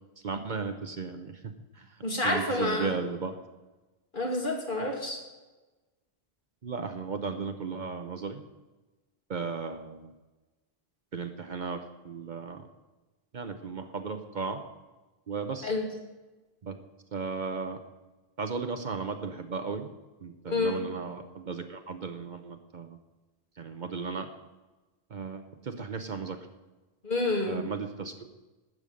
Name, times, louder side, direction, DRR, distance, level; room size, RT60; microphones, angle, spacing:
voice 1, 0.2-3.4 6.6-8.4 9.3-10.1 11.1-12.7 13.3-14.6 15.3-15.7 16.6-16.8 17.1-17.8 18.4-19.9 20.2-23.0 23.6-24.3 25.1-26.4 27.5-28.3, right 5 dB, 50° right, 7 dB, 0.9 m, -35 dB
voice 2, 2.0-3.0 4.1-5.2 15.6-15.8 20.5-20.7 27.0-27.6, left 2 dB, 50° left, -1 dB, 2.5 m, -28 dB
12.5 x 8.1 x 5.1 m, 1.2 s
omnidirectional pair, 1.1 m